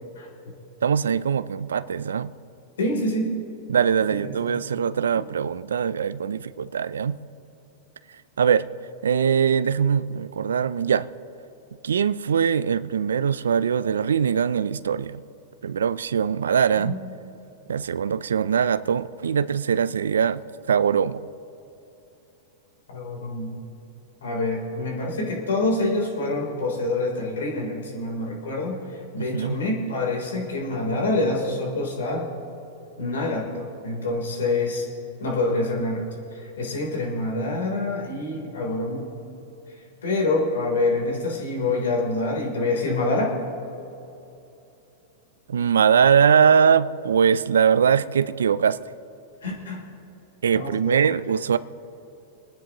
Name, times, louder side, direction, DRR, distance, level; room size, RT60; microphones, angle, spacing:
voice 1, 0.8-2.3 3.7-7.2 8.4-8.7 9.0-11.1 11.8-15.2 15.6-16.9 17.7-20.4 20.7-21.2 29.2-29.6 45.5-48.8 50.4-51.6, right 7 dB, 90° right, 15 dB, 0.5 m, -21 dB
voice 2, 2.8-3.4 4.1-4.5 16.4-16.5 16.8-17.0 22.9-23.6 24.2-32.3 33.0-34.9 35.2-36.0 36.3-39.0 40.0-43.4 49.4-49.8 50.5-50.8, left 2 dB, 85° left, -1 dB, 3.6 m, -26 dB
28.5 x 10.0 x 3.0 m, 2.9 s
hypercardioid pair, 120°, 0 cm